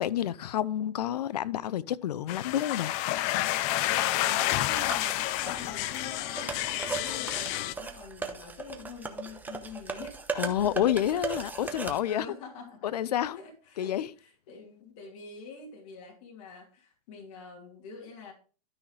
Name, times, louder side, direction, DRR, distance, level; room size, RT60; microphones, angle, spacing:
voice 1, 0.0-2.9 10.3-12.3 12.8-13.4 13.8-14.1, left 11 dB, 90° left, 0.6 m, -29 dB
sound 1, 2.3-7.7, left 15 dB, 40° left, 0.5 m, -29 dB
voice 2, 4.1-6.6 7.0-10.7 12.0-12.9 13.3-18.3, left 5 dB, 55° left, 2.7 m, -46 dB
sound 2, 4.8-12.0, right 4 dB, 10° right, 0.9 m, -38 dB
12.5 x 5.7 x 3.2 m
supercardioid pair, 140°, 20 cm